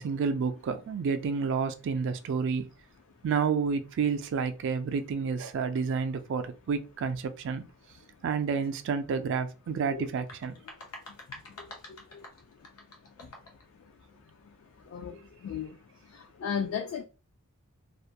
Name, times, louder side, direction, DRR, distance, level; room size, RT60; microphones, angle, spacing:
voice 1, 0.0-2.7 3.2-7.6 8.2-10.5, right 5 dB, 55° right, 0.3 m, -30 dB
sound 1, 10.0-13.7, left 2 dB, 85° left, 0.7 m, -48 dB
voice 2, 15.4-15.7 16.4-17.0, left 7 dB, 65° left, 0.3 m, -33 dB
2.3 x 2.1 x 2.7 m
head